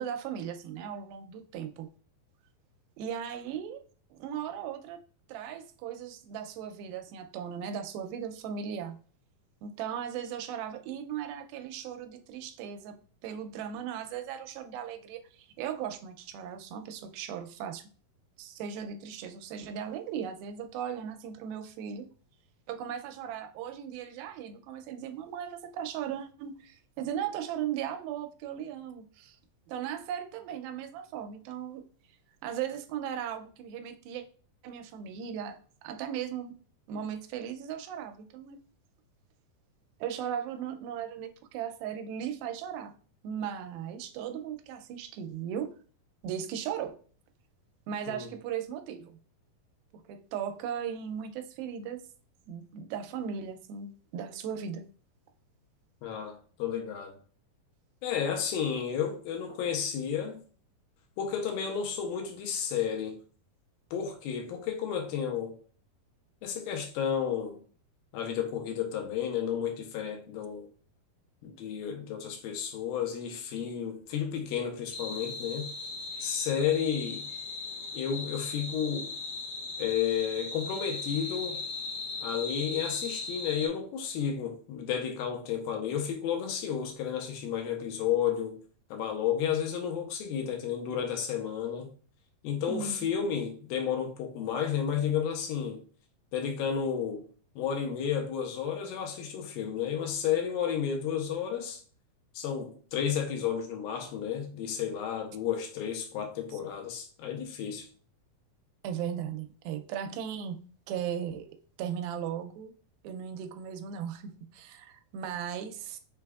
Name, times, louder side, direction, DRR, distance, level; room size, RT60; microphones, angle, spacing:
voice 1, 0.0-1.9 3.0-3.8 4.1-5.0 5.3-9.0 9.6-13.0 13.2-17.8 18.4-22.1 22.7-29.4 29.7-31.8 32.4-34.2 34.6-36.5 36.9-38.6 40.0-42.9 43.2-45.7 46.2-47.0 47.9-49.2 50.1-52.0 52.5-54.9 92.7-93.1 106.5-106.6 108.8-110.6 110.9-111.5 111.8-112.7 113.0-116.0, right 8 dB, 85° right, 2.4 m, -37 dB
voice 2, 56.0-57.2 58.0-60.4 61.2-63.2 63.9-65.5 66.4-67.6 68.1-70.7 71.4-75.7 76.2-77.3 77.9-79.1 79.8-81.6 82.2-88.6 88.9-91.9 92.4-95.8 96.3-97.3 97.6-101.8 102.4-107.9, left 8 dB, 85° left, 2.5 m, -32 dB
sound 1, 74.9-83.7, left 3 dB, 55° left, 1.6 m, -38 dB
5.8 x 3.4 x 2.3 m
omnidirectional pair, 4.2 m